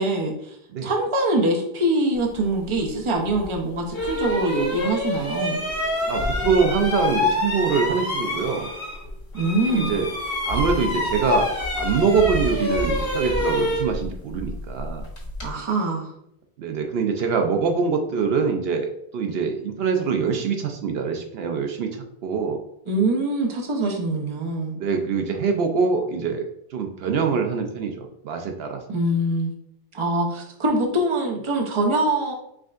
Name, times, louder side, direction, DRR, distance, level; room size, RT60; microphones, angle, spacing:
voice 1, 0.0-5.6 9.3-10.0 15.4-16.1 22.9-24.7 28.9-29.5 29.9-32.3, right 1 dB, 35° right, 1 dB, 0.7 m, -24 dB
sound 1, 3.3-3.4 3.9-9.1 9.3-15.5, left 2 dB, 65° left, 1.6 m, -26 dB
voice 2, 6.1-8.7 9.7-10.1 10.5-11.5 11.8-15.0 16.6-22.6 24.7-26.4 26.7-28.8, right 5 dB, 75° right, 4 dB, 0.8 m, -24 dB
4.9 x 3.5 x 2.4 m, 0.76 s
omnidirectional pair, 1.0 m